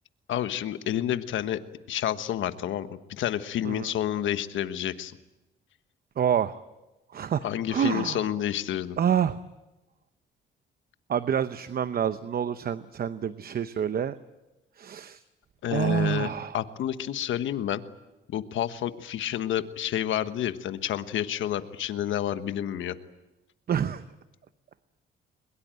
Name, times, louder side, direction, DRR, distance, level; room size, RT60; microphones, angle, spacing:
voice 1, 0.3-1.6 1.9-5.1 7.4-9.0 15.6-17.8 18.3-23.0, left 11 dB, 75° left, 11 dB, 1.3 m, -29 dB
voice 2, 6.2-6.6 7.1-8.3 9.0-9.4 11.1-14.2 14.8-15.2 15.7-16.5 23.7-24.0, right 8 dB, 50° right, 12 dB, 0.8 m, -27 dB
22.0 x 21.5 x 9.1 m, 1.0 s
cardioid pair, 90°, 20 cm